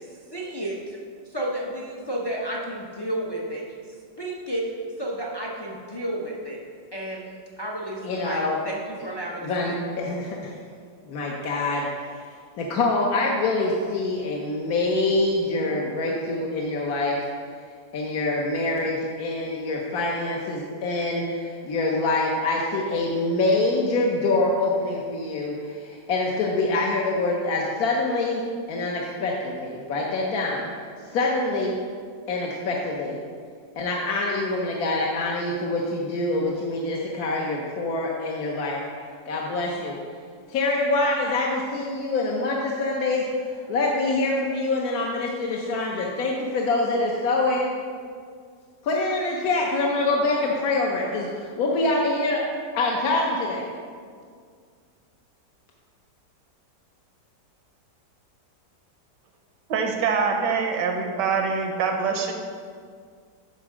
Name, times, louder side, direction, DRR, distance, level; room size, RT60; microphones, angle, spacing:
voice 1, 0.3-0.8 1.3-3.6 4.2-4.6 5.0-6.6 6.9-7.3 7.6-9.7, right 1 dB, 35° left, -3 dB, 0.3 m, -31 dB
voice 2, 8.0-8.6 9.4-10.5 11.1-11.9 12.6-17.2 17.9-28.4 28.7-30.7 31.1-31.7 32.3-33.2 33.8-38.8 39.3-40.0 40.5-43.2 43.7-47.7 48.8-52.5 52.7-53.6, left 2 dB, 65° left, -2 dB, 1.2 m, -25 dB
voice 3, 59.7-62.3, right 5 dB, 75° right, 3 dB, 1.5 m, -24 dB
9.9 x 3.6 x 6.0 m, 2.1 s
omnidirectional pair, 1.9 m